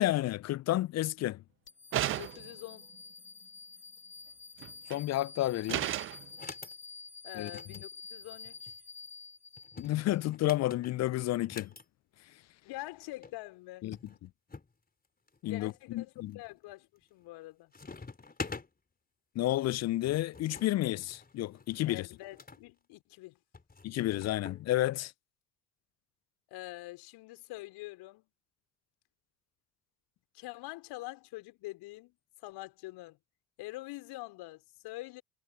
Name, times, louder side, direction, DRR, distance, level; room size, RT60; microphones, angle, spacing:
voice 1, 0.0-1.4 4.9-5.9 7.3-7.5 9.8-11.7 13.8-14.0 14.2-14.3 15.4-16.3 19.3-22.1 23.8-25.1, left 15 dB, 35° left, 0.6 m, -31 dB
sound 1, 1.7-10.1, left 4 dB, 90° left, 1.9 m, -49 dB
sound 2, 1.9-2.6 4.6-5.0 5.7-6.3, right 14 dB, 30° right, 0.4 m, -33 dB
voice 2, 2.0-2.9 7.2-8.7 12.6-13.9 15.4-17.7 21.8-23.4 26.5-28.3 30.3-33.2 33.6-35.2, left 19 dB, 60° left, 5.3 m, -45 dB
sound 3, 5.6-5.9 6.3-6.8 7.4-8.8 9.6-11.8 12.9-13.0 13.2-13.3 13.9-14.7 15.3-15.8 16.3-16.7 17.0-17.4 17.7-18.7 19.6-22.6 23.5-24.6, left 4 dB, 20° left, 4.3 m, -46 dB
figure-of-eight pair, 55°, 45 cm